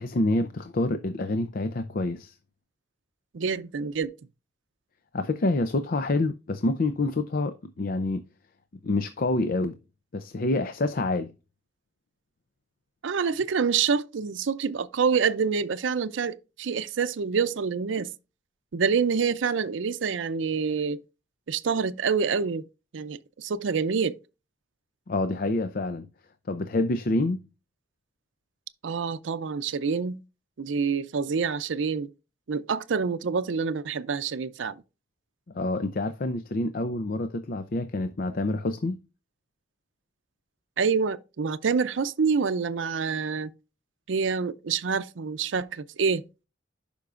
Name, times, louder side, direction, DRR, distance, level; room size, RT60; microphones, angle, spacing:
voice 1, 0.0-2.4 5.1-8.2 8.8-9.8 10.1-11.3 25.1-26.1 26.5-27.4 35.5-39.0, left 2 dB, 50° left, 0.5 m, -27 dB
voice 2, 3.3-4.1 13.0-18.1 18.7-21.0 21.5-22.6 22.9-24.1 28.8-30.2 30.6-32.1 32.5-34.8 40.8-43.5 44.1-46.2, right 5 dB, 85° right, 0.5 m, -27 dB
11.5 x 5.3 x 2.4 m
head